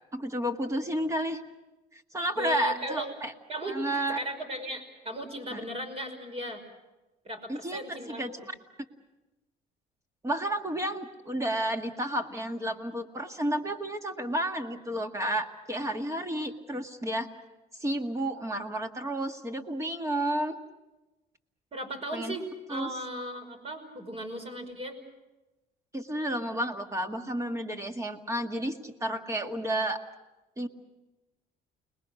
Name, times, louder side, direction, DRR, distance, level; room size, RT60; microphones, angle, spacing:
voice 1, 0.1-1.4 1.9-3.3 3.7-4.2 5.5-5.6 7.5-8.3 10.2-17.3 17.8-20.6 22.1-22.4 22.7-22.9 25.9-30.0 30.6-30.7, right 1 dB, 20° right, 5 dB, 2.0 m, -31 dB
voice 2, 2.4-3.1 3.5-3.8 4.1-6.6 7.2-8.5 21.7-25.0, right 1 dB, 35° right, 6 dB, 5.6 m, -37 dB
29.5 x 20.5 x 6.5 m, 1.1 s
cardioid pair, 110°, 17 cm